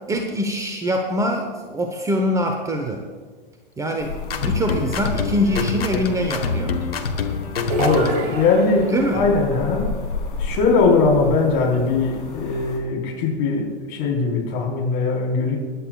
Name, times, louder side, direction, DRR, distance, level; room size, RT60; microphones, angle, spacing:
voice 1, 0.1-3.0 3.8-6.8 8.9-9.2, equal, 10° right, 3 dB, 0.9 m, -24 dB
sound 1, 4.0-12.8, left 4 dB, 65° left, 3.2 m, -33 dB
sound 2, 4.2-8.3, left 5 dB, 80° left, 1.3 m, -26 dB
sound 3, 7.7-9.2, right 2 dB, 25° right, 2.3 m, -27 dB
voice 2, 7.8-9.9 10.4-15.6, left 4 dB, 40° left, -1 dB, 3.9 m, -20 dB
23.5 x 11.0 x 2.4 m, 1.5 s
figure-of-eight pair, 105°, 29 cm